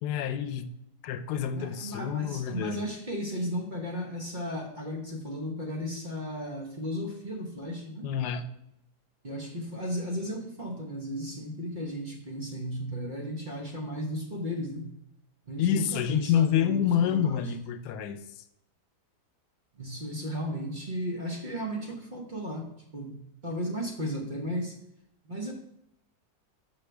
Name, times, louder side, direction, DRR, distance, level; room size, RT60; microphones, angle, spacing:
voice 1, 0.0-0.7 1.0-2.8 8.0-8.5 15.6-18.4, left 9 dB, 90° left, 11 dB, 1.2 m, -28 dB
voice 2, 1.5-8.1 9.2-14.8 15.5-17.5 19.7-22.7 22.9-24.7 25.2-25.5, equal, 35° right, 0 dB, 1.0 m, -35 dB
6.5 x 6.1 x 3.3 m, 0.82 s
omnidirectional pair, 1.7 m